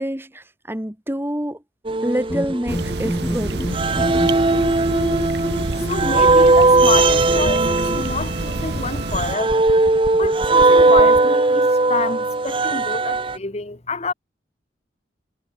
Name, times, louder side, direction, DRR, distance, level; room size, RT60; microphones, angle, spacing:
voice 1, 0.0-1.6 2.0-3.8, equal, 10° right, 1.7 m, -27 dB
sound 1, 1.8-3.3 3.7-13.4, right 3 dB, 30° right, 0.7 m, -18 dB
sound 2, 2.3-11.3, left 1 dB, 10° left, 0.3 m, -30 dB
sound 3, 2.7-9.4, right 2 dB, 65° right, 1.0 m, -27 dB
voice 2, 5.9-9.7 10.2-14.1, left 3 dB, 35° left, 1.2 m, -28 dB
head